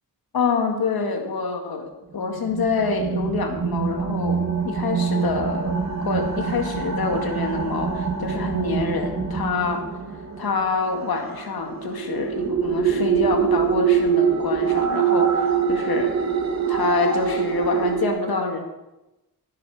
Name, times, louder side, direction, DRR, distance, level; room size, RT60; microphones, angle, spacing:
voice 1, 0.3-5.8 6.0-9.9 10.4-16.1 16.7-18.6, left 4 dB, 80° left, 3 dB, 2.1 m, -26 dB
sound 1, 2.3-18.1, right 6 dB, 45° right, 1.8 m, -24 dB
15.5 x 9.5 x 5.0 m, 1.0 s
wide cardioid pair, 105°, 36 cm